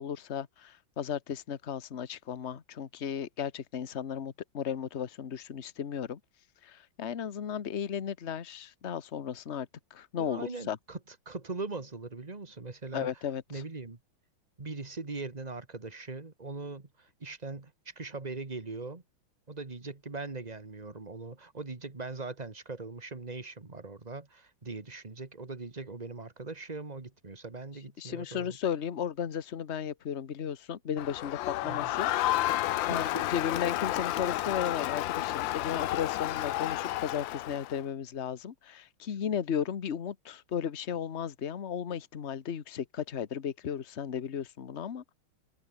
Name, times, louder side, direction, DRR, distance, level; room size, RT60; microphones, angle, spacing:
voice 1, 0.0-6.2 6.6-10.8 12.9-13.6 28.0-32.1 32.9-45.1, left 8 dB, 40° left, 1.3 m, -35 dB
voice 2, 10.2-13.1 13.5-14.0 14.6-19.0 19.5-28.6 31.6-31.9 32.8-33.2, right 3 dB, 20° right, 1.7 m, -41 dB
Crowd, 31.0-37.8, left 15 dB, 75° left, 1.3 m, -31 dB
omnidirectional pair, 2.2 m